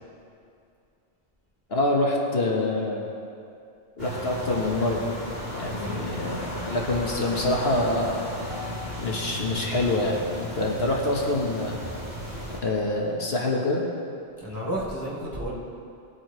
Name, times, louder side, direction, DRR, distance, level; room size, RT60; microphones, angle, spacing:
voice 1, 1.7-3.1 4.0-5.1 5.5-8.2 9.0-11.9 12.6-13.8, left 2 dB, 65° left, -1 dB, 1.6 m, -26 dB
sound 1, 4.0-12.6, equal, 60° right, 3.7 m, -35 dB
voice 2, 5.5-6.0 14.4-15.5, right 1 dB, 20° right, -9 dB, 3.2 m, -32 dB
19.0 x 8.5 x 3.1 m, 2.5 s
omnidirectional pair, 1.1 m